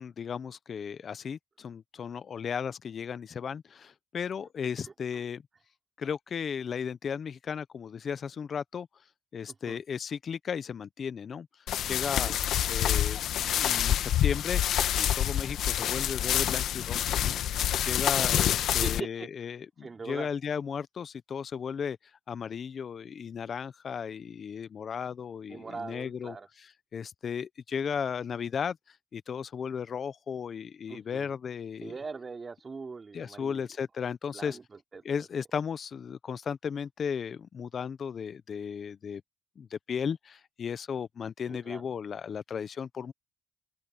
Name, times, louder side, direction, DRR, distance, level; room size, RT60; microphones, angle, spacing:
voice 1, 0.0-5.4 6.0-8.9 9.3-12.3 12.7-14.6 14.9-17.4 17.8-22.0 22.3-31.9 33.1-34.6 35.0-39.2 39.6-43.1, left 7 dB, 50° left, 0.7 m, -35 dB
sound 1, 11.7-19.0, left 11 dB, 75° left, 1.1 m, -27 dB
voice 2, 18.8-19.3 19.8-20.3 25.5-26.5 30.9-31.3 31.8-33.7 34.3-35.0 41.5-41.8, right 4 dB, 35° right, 3.4 m, -41 dB
open air
cardioid pair, 90°, 0 cm